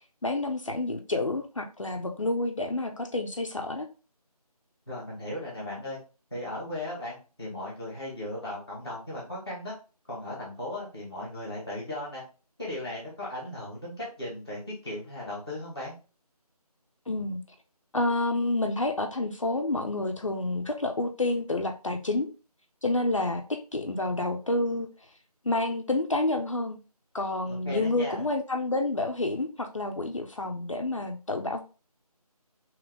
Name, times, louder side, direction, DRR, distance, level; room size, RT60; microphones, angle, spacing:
voice 1, 0.2-3.9 17.1-17.4 17.9-22.3 22.8-24.9 25.4-26.8 27.1-31.6, left 2 dB, 55° left, 4 dB, 0.5 m, -29 dB
voice 2, 4.9-6.0 6.3-9.7 10.1-12.2 12.6-15.9 27.6-28.2, left 1 dB, 5° right, -9 dB, 1.1 m, -37 dB
3.5 x 3.0 x 3.6 m, 0.34 s
figure-of-eight pair, 180°, 20 cm